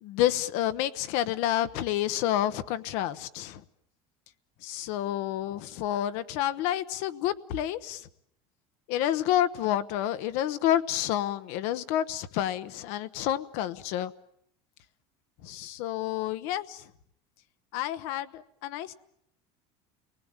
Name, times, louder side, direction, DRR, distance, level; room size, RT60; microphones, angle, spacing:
voice 1, 0.0-3.6 4.6-8.1 8.9-14.1 15.4-16.8 17.7-18.9, left 12 dB, 60° left, 1.0 m, -29 dB
29.0 x 20.0 x 8.8 m
cardioid pair, 170°, 13 cm